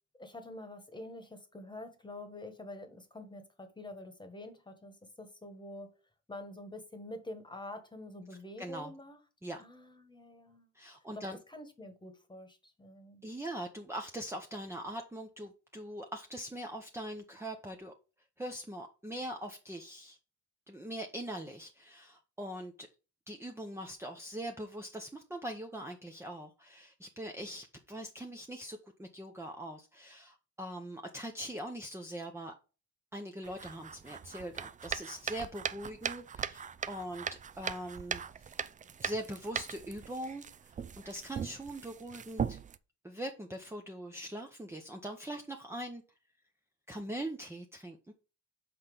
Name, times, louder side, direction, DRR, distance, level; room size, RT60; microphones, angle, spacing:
voice 1, 0.2-5.9 6.3-9.2 9.6-10.7 11.1-13.2, left 1 dB, 15° left, 1.4 m, -47 dB
voice 2, 8.6-8.9 9.4-9.6 10.7-11.4 13.2-17.9 18.4-20.2 20.7-22.9 23.3-32.5 33.1-37.3 37.6-38.5 39.0-40.7 41.0-42.6 43.0-46.0 46.9-48.1, right 1 dB, 10° right, 0.8 m, -42 dB
sound 1, 33.4-42.8, right 7 dB, 25° right, 0.4 m, -40 dB
5.9 x 4.3 x 5.2 m
cardioid pair, 90°, 30 cm